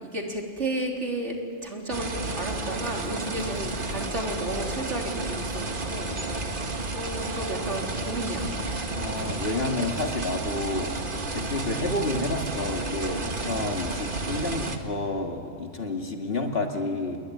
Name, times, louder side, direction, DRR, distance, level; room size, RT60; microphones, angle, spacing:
voice 1, 0.0-1.4 1.6-6.1 6.9-8.5, right 1 dB, 60° right, 0 dB, 3.8 m, -32 dB
sound 1, 1.6-10.5, equal, 25° right, 4.1 m, -48 dB
sound 2, 1.9-14.8, right 2 dB, 40° right, 1.8 m, -32 dB
voice 2, 8.9-10.9 11.3-17.2, left 2 dB, 50° left, 3 dB, 2.3 m, -30 dB
29.0 x 21.5 x 9.3 m, 2.3 s
omnidirectional pair, 1.3 m